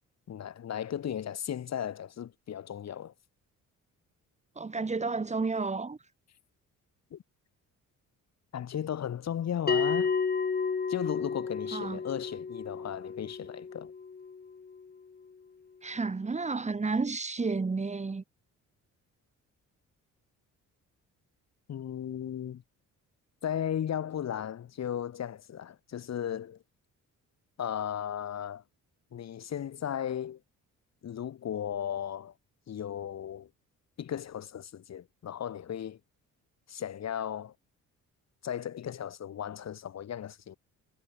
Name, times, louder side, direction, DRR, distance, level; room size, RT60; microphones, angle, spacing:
voice 1, 0.3-3.1 7.1-7.2 8.5-10.1 10.9-13.9 21.7-22.6 23.4-26.6 27.6-28.6 29.1-30.4 31.0-32.3 32.7-33.5 34.0-36.0 36.7-37.5 38.4-40.6, left 9 dB, 55° left, 3.4 m, -35 dB
voice 2, 4.6-6.0 11.7-12.0 15.8-18.2, right 4 dB, 20° right, 2.3 m, -31 dB
Bell, 9.7-14.7, left 5 dB, 30° left, 4.4 m, -32 dB
cardioid pair, 125°, 31 cm